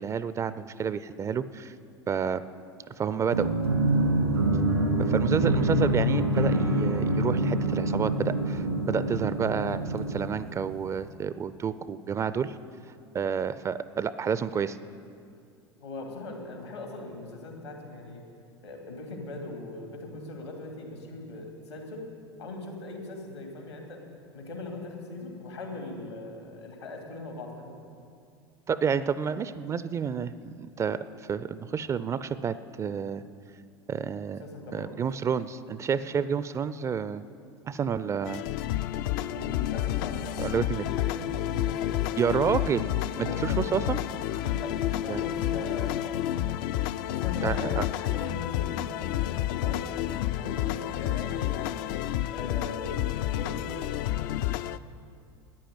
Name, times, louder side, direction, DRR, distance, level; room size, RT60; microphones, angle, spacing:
voice 1, 0.0-1.7 2.1-2.4 3.0-3.5 5.0-12.5 13.1-14.8 28.7-33.2 33.9-34.4 34.7-37.2 37.7-38.4 40.4-40.8 42.2-42.8 43.2-44.0 45.1-45.2 47.4-47.8, right 7 dB, 20° right, 15 dB, 0.4 m, -29 dB
sound 1, 3.3-10.9, right 1 dB, 85° right, 1.8 m, -26 dB
voice 2, 15.8-18.2 18.6-22.1 22.4-24.0 24.3-27.8 34.4-35.0 39.1-42.2 43.1-43.7 44.4-46.5 47.1-49.9 50.4-51.7 52.3-54.1, left 2 dB, 80° left, 2 dB, 2.6 m, -40 dB
sound 2, 38.2-54.8, left 13 dB, 50° left, 0.4 m, -30 dB
13.0 x 10.0 x 7.8 m, 2.4 s
figure-of-eight pair, 80°, 14 cm